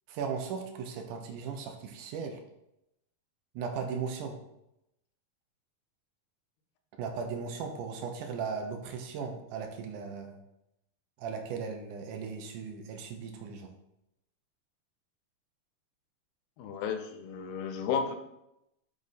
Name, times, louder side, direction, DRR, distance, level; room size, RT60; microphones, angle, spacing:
voice 1, 0.1-2.4 3.5-4.4 7.0-10.4 11.2-13.7, right 5 dB, 75° right, 4 dB, 2.0 m, -37 dB
voice 2, 16.6-18.2, left 6 dB, 85° left, 6 dB, 2.5 m, -33 dB
6.6 x 3.6 x 4.1 m, 0.85 s
omnidirectional pair, 4.2 m